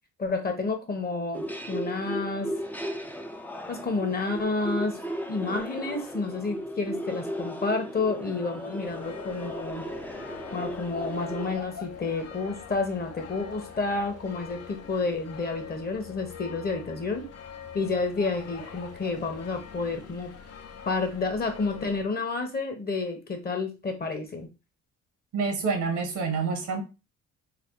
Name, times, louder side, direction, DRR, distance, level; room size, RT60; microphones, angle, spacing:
voice 1, 0.2-2.5 3.7-5.0 5.3-9.8 10.5-17.3 17.7-20.3 20.9-24.5, left 3 dB, 30° left, 5 dB, 1.0 m, -30 dB
sound 1, 1.3-11.6, equal, 5° left, 0.4 m, -36 dB
sound 2, 8.8-22.1, left 7 dB, 55° left, 0.7 m, -43 dB
voice 2, 25.3-26.8, right 5 dB, 75° right, 4 dB, 1.1 m, -27 dB
3.4 x 2.1 x 3.8 m, 0.28 s
cardioid pair, 90°, 30 cm